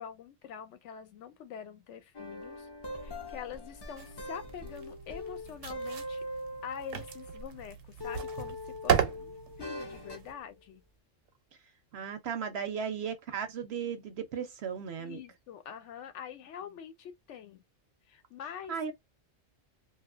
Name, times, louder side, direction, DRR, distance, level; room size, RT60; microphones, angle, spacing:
voice 1, 0.0-2.7 3.0-6.2 6.6-10.8 12.8-13.0 15.0-17.6 18.1-18.8, left 8 dB, 70° left, 0.9 m, -45 dB
sound 1, 2.1-7.6 8.0-10.3, left 1 dB, 35° left, 0.4 m, -42 dB
sound 2, 4.0-10.3, right 8 dB, 85° right, 1.0 m, -35 dB
voice 2, 11.9-15.2 18.7-18.9, right 7 dB, 65° right, 0.7 m, -36 dB
2.7 x 2.3 x 2.4 m
omnidirectional pair, 1.3 m